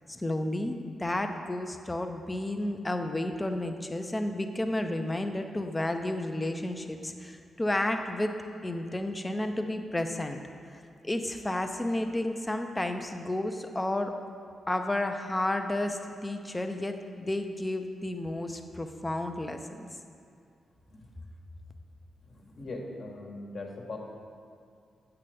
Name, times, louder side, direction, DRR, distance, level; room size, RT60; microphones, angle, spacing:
voice 1, 0.1-8.4 8.6-10.4 10.7-14.1 14.7-19.9, left 1 dB, 20° left, 6 dB, 0.7 m, -32 dB
voice 2, 22.2-24.0, left 2 dB, 60° left, -1 dB, 1.3 m, -40 dB
8.3 x 6.9 x 3.5 m, 2.4 s
supercardioid pair, 45°, 0 cm